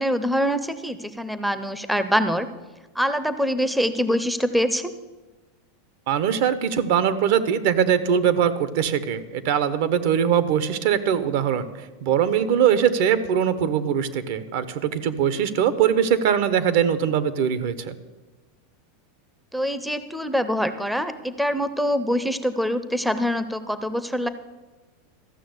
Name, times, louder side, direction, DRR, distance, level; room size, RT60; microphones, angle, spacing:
voice 1, 0.0-2.5 3.0-4.9 19.5-24.3, equal, ahead, 11 dB, 0.6 m, -24 dB
voice 2, 6.1-11.7 12.0-17.9, right 8 dB, 65° right, 13 dB, 0.9 m, -21 dB
14.0 x 6.3 x 8.0 m, 1.2 s
supercardioid pair, 135°, 0 cm